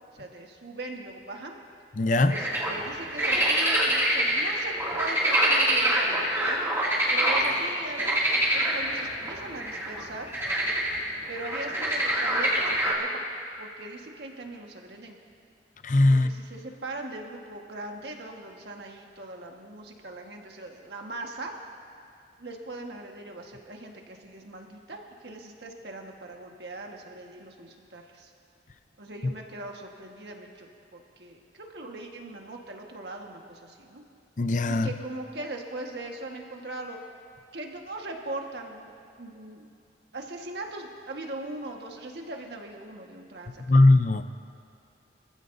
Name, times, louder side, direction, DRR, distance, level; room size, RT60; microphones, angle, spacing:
voice 1, 0.1-1.6 2.3-6.6 7.1-10.3 11.3-13.3 13.6-15.2 16.1-21.5 22.4-28.3 29.0-34.0 34.7-37.0 37.5-39.7 40.1-43.8, right 2 dB, 65° right, 1 dB, 1.5 m, -40 dB
voice 2, 2.0-2.3 15.8-16.3 34.4-34.9 43.7-44.2, left 2 dB, 45° left, 9 dB, 0.6 m, -20 dB
sound 1, 2.3-7.5 8.0-12.9, right 1 dB, 15° right, 2.4 m, -25 dB
25.0 x 15.0 x 2.7 m, 2.5 s
head